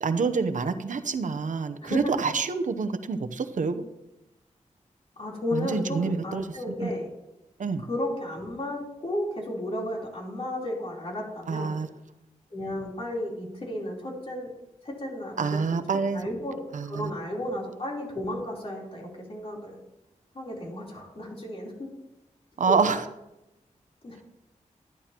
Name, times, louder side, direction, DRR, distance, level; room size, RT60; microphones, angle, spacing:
voice 1, 0.0-3.8 5.5-6.9 7.6-7.8 11.5-11.9 15.4-16.3 16.7-17.1 22.6-23.1, right 5 dB, 70° right, 9 dB, 0.7 m, -27 dB
voice 2, 1.8-2.2 5.2-7.1 7.8-11.7 12.5-14.5 14.8-15.8 16.1-19.8 20.3-21.9 22.7-22.8 24.0-24.2, left 1 dB, 45° left, -3 dB, 3.6 m, -33 dB
13.0 x 11.0 x 3.0 m, 0.92 s
wide cardioid pair, 100°, 13 cm